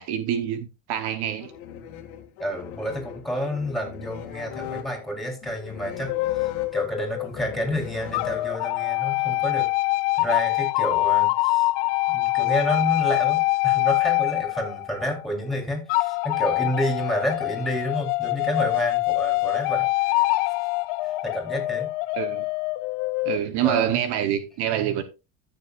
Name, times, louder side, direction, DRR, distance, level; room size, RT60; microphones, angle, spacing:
voice 1, 0.0-1.5 22.1-22.5 23.2-25.0, right 10 dB, 60° right, 1.0 m, -26 dB
sound 1, 1.4-8.9, left 9 dB, 90° left, 2.0 m, -40 dB
voice 2, 2.4-9.7 10.2-11.7 12.1-19.9 21.2-21.9 23.6-23.9, equal, ahead, 3.5 m, -29 dB
sound 2, 6.1-7.6 8.1-15.2 15.9-23.4, left 20 dB, 65° left, 0.6 m, -24 dB
14.0 x 6.8 x 2.4 m
cardioid pair, 130°, 44 cm